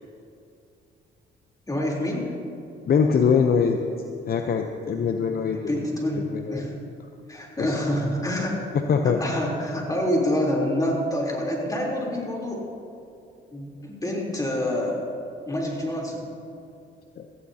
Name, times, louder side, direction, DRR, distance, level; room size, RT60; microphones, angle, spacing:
voice 1, 1.7-2.4 5.7-6.7 7.3-8.5 9.0-12.6 13.5-15.0 15.5-16.2, left 1 dB, 20° left, -2 dB, 3.6 m, -27 dB
voice 2, 2.9-3.8 4.3-5.6 6.3-6.7 7.6-7.8 8.9-9.2, left 6 dB, 50° left, 4 dB, 0.8 m, -22 dB
18.0 x 14.5 x 2.9 m, 2.6 s
cardioid pair, 90°, 20 cm